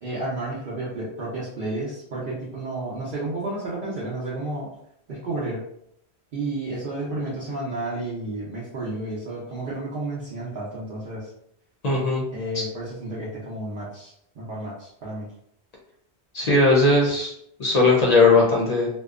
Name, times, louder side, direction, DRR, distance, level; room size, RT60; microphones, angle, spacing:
voice 1, 0.0-4.7 5.1-5.6 6.3-11.3 12.3-15.3, right 2 dB, 60° right, -8 dB, 0.8 m, -31 dB
voice 2, 11.8-12.2 12.5-12.6 16.3-17.3 17.6-18.9, left 3 dB, 50° left, -3 dB, 0.5 m, -18 dB
2.6 x 2.1 x 2.3 m, 0.72 s
omnidirectional pair, 1.1 m